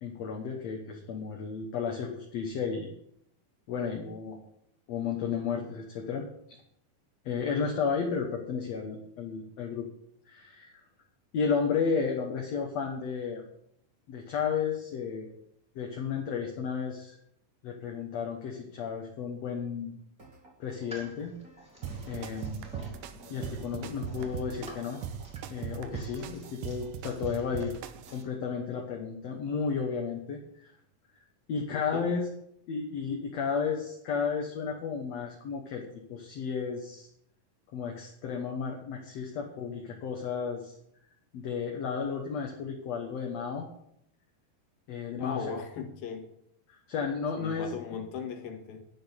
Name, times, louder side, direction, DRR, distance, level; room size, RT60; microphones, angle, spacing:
voice 1, 0.0-2.9 3.7-4.4 4.9-6.3 7.3-9.9 10.3-10.8 11.3-13.4 14.1-15.3 15.8-17.2 17.6-19.9 20.6-21.4 22.1-22.7 23.3-25.0 25.5-27.8 28.1-30.7 31.5-32.3 32.7-35.8 36.1-37.1 37.7-40.8 41.3-43.7 44.9-45.5 46.7-47.7, left 6 dB, 60° left, 1 dB, 2.2 m, -33 dB
sound 1, 20.2-28.2, right 3 dB, 25° right, 2.4 m, -55 dB
sound 2, 20.6-28.3, equal, ahead, 2.6 m, -50 dB
sound 3, 21.8-28.2, right 8 dB, 90° right, 2.6 m, -40 dB
voice 2, 31.7-32.2 45.2-46.3 47.3-48.8, left 6 dB, 85° left, 4 dB, 3.4 m, -38 dB
11.5 x 6.3 x 8.2 m, 0.72 s
omnidirectional pair, 4.1 m